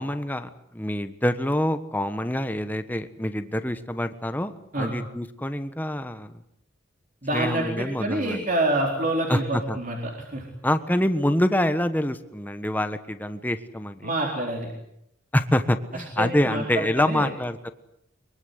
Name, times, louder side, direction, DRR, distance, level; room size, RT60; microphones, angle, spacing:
voice 1, 0.0-6.4 7.3-8.4 9.3-9.8 10.6-14.1 15.3-17.7, left 1 dB, 10° left, 10 dB, 1.3 m, -26 dB
voice 2, 7.2-10.0 10.3-10.4 14.0-14.7 16.2-16.6 17.0-17.3, right 1 dB, 40° right, 1 dB, 4.1 m, -26 dB
23.5 x 23.5 x 8.3 m, 0.78 s
head